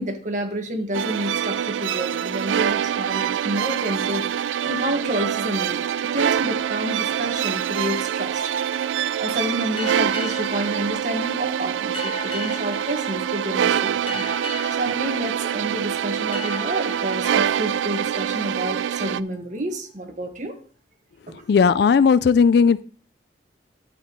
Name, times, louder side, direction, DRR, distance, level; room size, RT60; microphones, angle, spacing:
voice 1, 0.0-5.8 6.1-8.5 8.9-14.3 14.8-20.6 21.3-21.4, right 1 dB, 45° right, 4 dB, 1.6 m, -29 dB
sound 1, 0.9-19.2, right 9 dB, 85° right, 0.3 m, -25 dB
sound 2, 9.8-19.1, left 3 dB, 30° left, 1.4 m, -38 dB
voice 2, 21.5-22.8, left 6 dB, 60° left, 17 dB, 0.3 m, -16 dB
11.5 x 8.1 x 3.1 m, 0.43 s
head